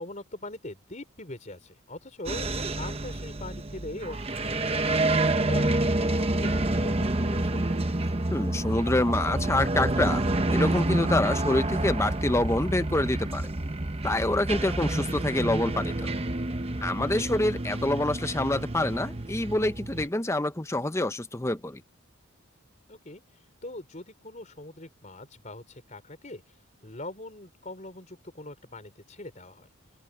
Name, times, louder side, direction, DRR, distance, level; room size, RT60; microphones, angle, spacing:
voice 1, 0.0-5.8 6.1-7.8 17.0-17.3 22.9-23.2 23.6-26.4 26.8-29.7, left 2 dB, 35° left, 4.2 m, -42 dB
sound 1, 2.3-20.1, right 2 dB, 25° right, 0.9 m, -28 dB
voice 2, 8.3-10.3 10.5-13.5 14.0-16.1 16.8-21.8, left 1 dB, 15° left, 0.7 m, -26 dB
open air
head